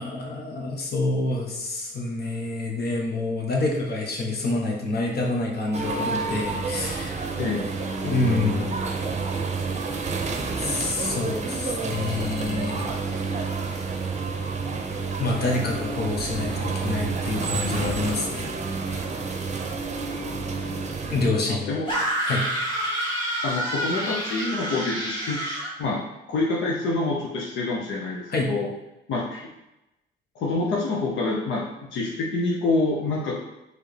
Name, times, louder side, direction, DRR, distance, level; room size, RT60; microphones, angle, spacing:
voice 1, 0.0-7.2 8.0-8.8 10.6-12.9 15.2-18.5 21.1-21.8 22.2-22.4 28.3-28.5, left 2 dB, 55° left, -1 dB, 1.1 m, -27 dB
sound 1, 5.7-21.3, right 4 dB, 35° right, 0.6 m, -29 dB
voice 2, 21.5-21.9 23.4-25.4 25.8-26.0 26.3-28.7 29.1-29.4 30.4-31.6 31.9-33.4, left 3 dB, 75° left, -3 dB, 0.7 m, -26 dB
sound 2, 21.9-25.7, right 1 dB, 25° left, 1.5 m, -28 dB
4.6 x 3.2 x 3.3 m, 0.93 s
cardioid pair, 90°, 20 cm